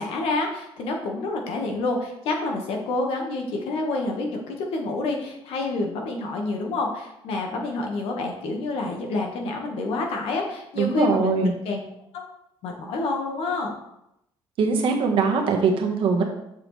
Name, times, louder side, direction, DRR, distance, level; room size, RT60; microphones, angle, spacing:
voice 1, 0.0-11.8 12.1-12.2 12.6-13.8, left 3 dB, 80° left, 2 dB, 1.5 m, -28 dB
voice 2, 10.8-11.5 14.6-16.2, right 5 dB, 65° right, 2 dB, 1.3 m, -22 dB
7.2 x 5.9 x 3.3 m, 0.83 s
cardioid pair, 145°, 10 cm